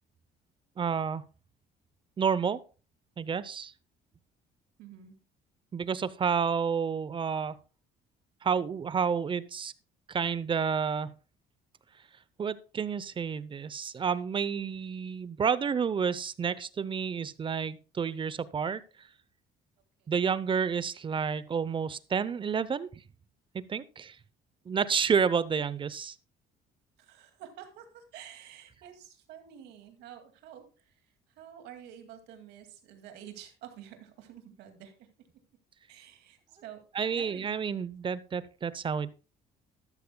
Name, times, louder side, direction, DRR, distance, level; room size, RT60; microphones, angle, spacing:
voice 1, 0.8-1.2 2.2-2.6 3.2-3.7 5.7-7.6 8.4-9.7 10.1-11.1 12.4-18.8 20.1-23.0 23.5-24.2 24.7-26.2 36.9-39.1, right 6 dB, 30° right, 17 dB, 0.6 m, -30 dB
voice 2, 4.8-5.1 20.0-20.1 27.0-35.1 35.9-36.8 37.1-37.5, right 10 dB, 85° right, 6 dB, 2.3 m, -49 dB
13.0 x 12.0 x 2.2 m, 0.35 s
cardioid pair, 110°, 17 cm